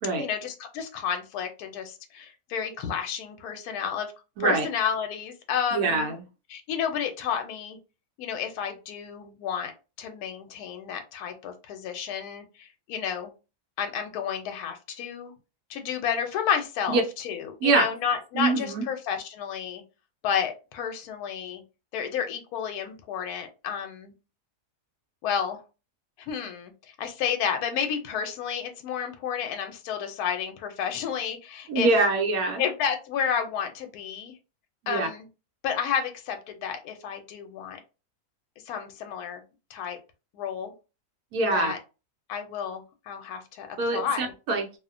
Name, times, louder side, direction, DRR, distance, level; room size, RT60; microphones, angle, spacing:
voice 1, 0.2-4.1 4.4-6.1 6.5-7.8 8.2-13.3 13.8-15.3 15.7-19.8 20.2-21.6 21.9-24.1 25.2-25.6 26.2-31.9 32.6-34.4 34.9-35.3 35.6-37.8 38.7-39.4 39.7-40.0 40.3-40.7 41.5-41.8 42.3-44.3, left 8 dB, 75° left, 1.0 m, -31 dB
voice 2, 5.7-6.2 16.9-17.0 17.6-17.9 18.3-18.8 31.7-32.6 34.8-35.1 41.3-41.7 43.8-44.8, right 3 dB, 75° right, 1.1 m, -24 dB
2.7 x 2.1 x 2.4 m
omnidirectional pair, 1.7 m